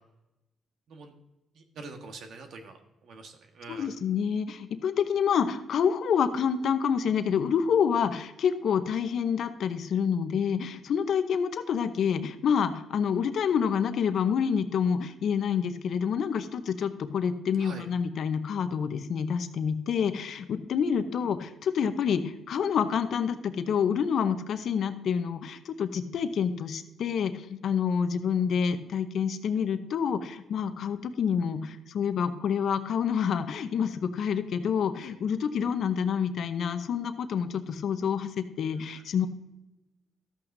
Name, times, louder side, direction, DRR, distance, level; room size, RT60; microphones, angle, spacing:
voice 1, 1.5-3.9 17.6-17.8 35.0-35.1 38.7-39.0, right 3 dB, 70° right, 4 dB, 1.5 m, -45 dB
voice 2, 3.7-39.3, left 7 dB, 65° left, 10 dB, 0.8 m, -28 dB
13.0 x 8.6 x 2.7 m, 0.98 s
cardioid pair, 90°, 0 cm